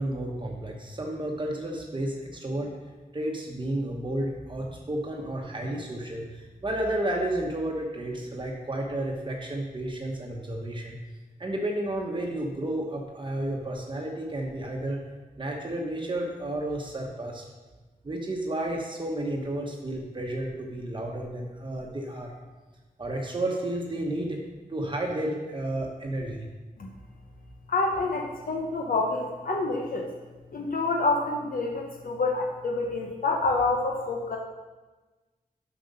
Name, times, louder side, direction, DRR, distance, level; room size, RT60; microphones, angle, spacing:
voice 1, 0.0-2.7 3.1-11.0 11.4-15.0 15.4-17.4 18.0-22.3 23.0-24.4 24.7-26.5, right 1 dB, 30° right, 0 dB, 1.0 m, -32 dB
voice 2, 27.7-30.1 30.5-34.4, left 3 dB, 70° left, 0 dB, 0.9 m, -27 dB
7.7 x 5.9 x 5.3 m, 1.2 s
wide cardioid pair, 120°, 15 cm